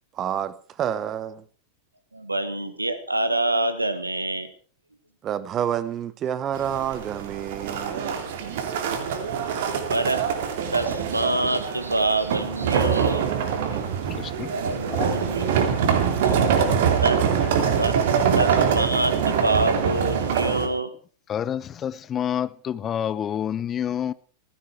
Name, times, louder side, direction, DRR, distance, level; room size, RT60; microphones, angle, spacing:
voice 1, 0.1-1.4 5.2-8.2, right 9 dB, 30° right, 1.1 m, -29 dB
voice 2, 2.1-4.5 9.9-10.2 10.7-13.3 14.5-15.7 16.2-16.3 17.0-17.2 17.8-20.9, right 2 dB, 85° right, 1.6 m, -26 dB
sound 1, 6.5-20.7, right 7 dB, 55° right, 2.6 m, -24 dB
voice 3, 14.1-14.5 14.9-15.3 21.3-24.1, left 9 dB, 25° left, 0.8 m, -28 dB
17.0 x 15.5 x 4.7 m
figure-of-eight pair, 90°, 0 cm